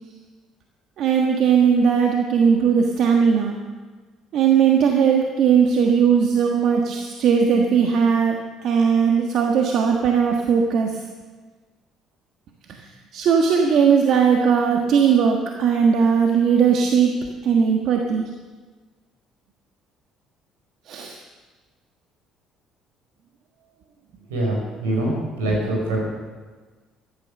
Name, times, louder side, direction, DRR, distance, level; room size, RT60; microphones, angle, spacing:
voice 1, 1.0-3.6 4.3-8.4 8.6-10.9 13.1-17.1 17.4-18.3 20.9-21.1, right 6 dB, 65° right, 2 dB, 1.4 m, -18 dB
voice 2, 24.3-26.1, right 1 dB, 90° right, -2 dB, 5.3 m, -24 dB
14.5 x 11.5 x 6.7 m, 1.3 s
hypercardioid pair, 60°, 0 cm